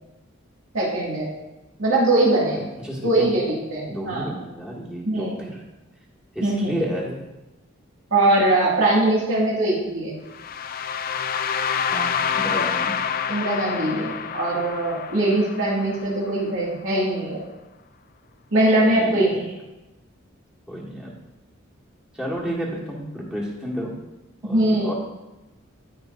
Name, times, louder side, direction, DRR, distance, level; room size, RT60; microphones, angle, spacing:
voice 1, 0.7-1.3 1.8-2.6 3.0-4.3 5.1-5.4 6.4-6.7 8.1-10.2 13.3-17.4 18.5-19.4 24.4-24.9, right 1 dB, 70° right, -6 dB, 2.2 m, -21 dB
voice 2, 2.6-3.3 3.9-5.6 6.4-7.2 11.9-13.0 18.9-19.3 20.7-21.2 22.2-23.9 24.4-24.9, equal, 5° right, -5 dB, 1.6 m, -31 dB
sound 1, 10.3-16.3, left 7 dB, 45° left, 0.3 m, -27 dB
15.0 x 5.1 x 2.7 m, 1.0 s
head